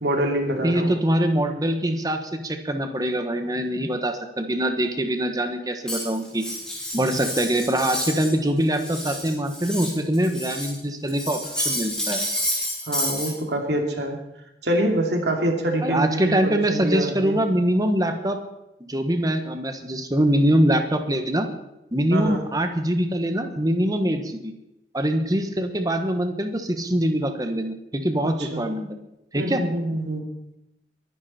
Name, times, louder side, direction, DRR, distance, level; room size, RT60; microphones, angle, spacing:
voice 1, 0.0-0.9 12.9-14.2 14.6-17.4 22.1-22.4 28.4-28.7 29.3-30.2, right 1 dB, 75° right, 3 dB, 2.7 m, -25 dB
voice 2, 0.5-6.5 6.9-12.2 15.8-18.4 18.9-21.5 21.9-24.5 24.9-28.9 29.3-29.6, right 1 dB, 20° right, 6 dB, 1.4 m, -23 dB
Cutlery silverware, 5.9-8.3 8.6-10.8 11.1-13.3, equal, 5° left, 5.4 m, -29 dB
23.0 x 11.0 x 4.4 m, 0.89 s
head